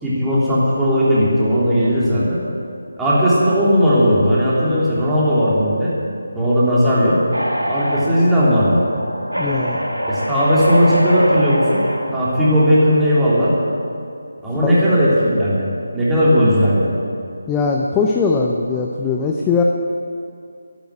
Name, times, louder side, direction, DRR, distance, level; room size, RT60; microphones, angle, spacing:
voice 1, 0.0-2.4 3.0-5.9 6.3-7.2 7.7-8.8 10.0-11.8 12.1-13.5 14.4-15.7 15.9-16.9, equal, 5° right, -10 dB, 3.2 m, -16 dB
sound 1, 7.3-12.9, equal, 85° right, 2.3 m, -24 dB
voice 2, 9.4-9.8 14.6-14.8 17.5-19.6, left 4 dB, 10° left, 0 dB, 0.7 m, -20 dB
13.0 x 12.0 x 7.9 m, 2.5 s
figure-of-eight pair, 155°, 0 cm